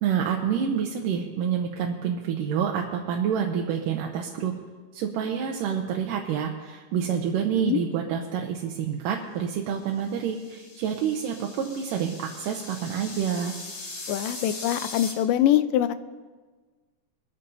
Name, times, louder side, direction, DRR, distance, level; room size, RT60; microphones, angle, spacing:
voice 1, 0.0-4.5 4.9-13.5, right 8 dB, 90° right, 1 dB, 2.5 m, -28 dB
sound 1, 10.0-15.1, left 3 dB, 40° left, 2.7 m, -40 dB
voice 2, 14.1-15.9, left 11 dB, 90° left, 12 dB, 2.2 m, -23 dB
22.0 x 13.0 x 2.7 m, 1.4 s
omnidirectional pair, 3.8 m